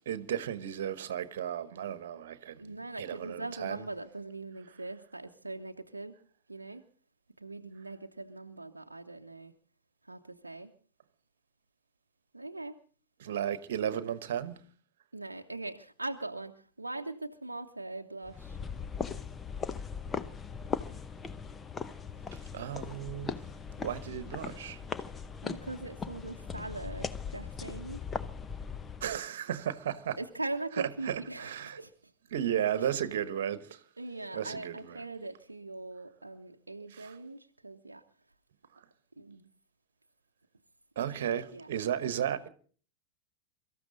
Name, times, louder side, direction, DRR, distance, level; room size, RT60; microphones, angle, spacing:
voice 1, 0.1-3.8 13.2-14.6 22.5-23.3 23.8-24.8 29.0-30.2 30.8-31.8 32.3-33.8 34.3-35.1 36.9-37.2 41.0-42.5, right 9 dB, 60° right, 1.2 m, -34 dB
voice 2, 2.6-6.2 6.5-6.8 7.4-9.5 10.1-10.7 12.3-12.7 15.1-18.6 25.4-28.0 30.2-31.9 32.8-32.9 34.0-38.0 39.2-39.5 41.3-41.7, right 2 dB, 80° right, 0.8 m, -41 dB
sound 1, 18.3-29.2, left 5 dB, 20° left, 0.8 m, -39 dB
24.0 x 14.0 x 3.9 m
figure-of-eight pair, 90°, 0 cm